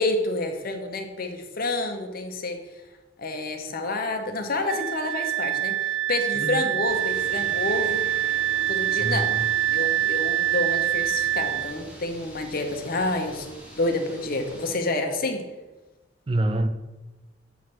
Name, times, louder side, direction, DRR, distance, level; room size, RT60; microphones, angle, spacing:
voice 1, 0.0-2.6 3.2-8.1 8.7-9.3 9.7-13.5 13.8-15.4, left 2 dB, 50° left, 5 dB, 0.8 m, -28 dB
Wind instrument woodwind instrument, 4.7-11.7, right 13 dB, 85° right, 0.6 m, -25 dB
voice 2, 6.3-6.7 9.0-9.5 16.3-16.7, right 1 dB, 30° right, 9 dB, 0.4 m, -26 dB
sound 1, 6.8-14.8, equal, 5° right, 1.2 m, -44 dB
8.1 x 3.2 x 6.1 m, 1.1 s
head